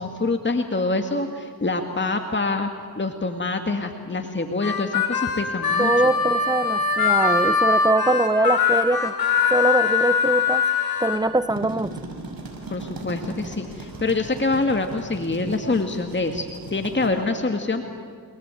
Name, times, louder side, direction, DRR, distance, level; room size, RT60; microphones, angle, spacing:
voice 1, 0.0-2.7 3.0-6.1 12.7-17.8, left 3 dB, 30° left, 5 dB, 2.1 m, -25 dB
Harmonica, 4.6-11.2, left 5 dB, 80° left, 4.4 m, -22 dB
voice 2, 5.8-9.2 9.5-10.7 11.0-12.0, right 2 dB, 10° right, 16 dB, 1.0 m, -22 dB
sound 1, 11.3-17.1, right 3 dB, 70° right, 5.8 m, -38 dB
29.5 x 19.0 x 9.2 m, 2.1 s
cardioid pair, 45°, 36 cm